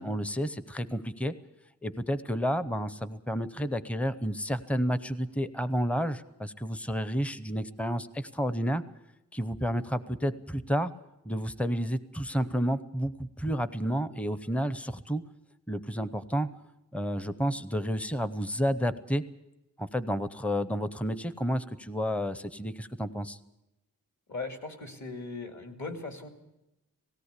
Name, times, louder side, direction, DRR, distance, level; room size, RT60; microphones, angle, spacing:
voice 1, 0.0-1.3 1.8-8.8 9.3-10.9 11.2-15.2 15.7-16.5 16.9-19.2 19.8-23.4, equal, 5° left, 14 dB, 0.7 m, -30 dB
voice 2, 24.3-26.3, left 3 dB, 50° left, 4 dB, 2.6 m, -38 dB
18.5 x 17.0 x 8.2 m, 0.92 s
wide cardioid pair, 110°, 36 cm